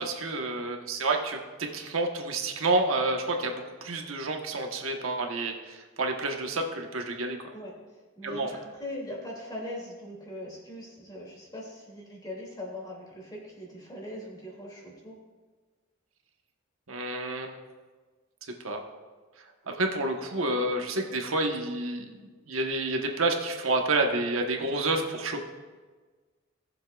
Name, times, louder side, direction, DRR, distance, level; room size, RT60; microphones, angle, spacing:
voice 1, 0.0-7.4 8.2-8.5 16.9-17.6 18.6-18.8 19.8-22.2 22.5-25.4, right 2 dB, 80° right, 3 dB, 1.2 m, -29 dB
voice 2, 8.2-15.2, left 1 dB, 20° left, -3 dB, 2.5 m, -40 dB
18.5 x 7.3 x 2.4 m, 1.4 s
head